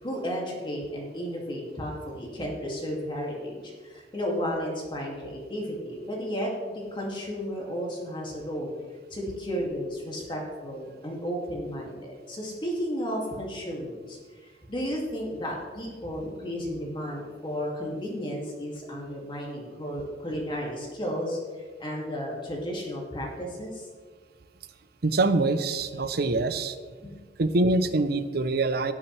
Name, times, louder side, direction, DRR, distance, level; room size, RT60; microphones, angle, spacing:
voice 1, 0.0-6.5 6.9-8.7 9.1-14.2 14.4-23.9 27.0-27.1, equal, 25° left, -2 dB, 2.4 m, -33 dB
voice 2, 25.0-26.8 27.4-28.9, right 2 dB, 60° right, 11 dB, 0.7 m, -24 dB
18.0 x 7.2 x 3.4 m, 1.5 s
head